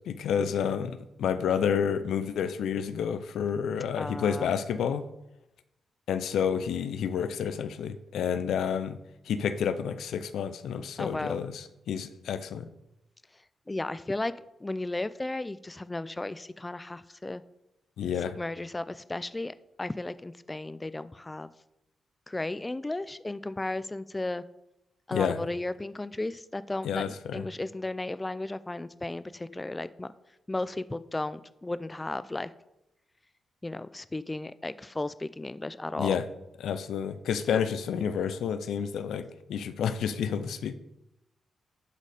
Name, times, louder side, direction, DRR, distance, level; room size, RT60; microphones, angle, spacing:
voice 1, 0.0-5.0 6.1-9.0 9.3-12.7 18.0-18.4 25.1-25.4 26.8-27.5 36.0-36.2 36.6-40.7, left 7 dB, 80° left, 11 dB, 0.5 m, -30 dB
voice 2, 4.0-4.5 11.0-11.4 13.7-14.3 14.6-17.4 18.3-21.5 22.3-24.4 25.1-30.1 30.5-32.5 33.6-36.2 37.5-37.6, left 2 dB, 25° left, 15 dB, 0.4 m, -34 dB
11.5 x 4.1 x 5.0 m, 0.88 s
supercardioid pair, 45°, 0 cm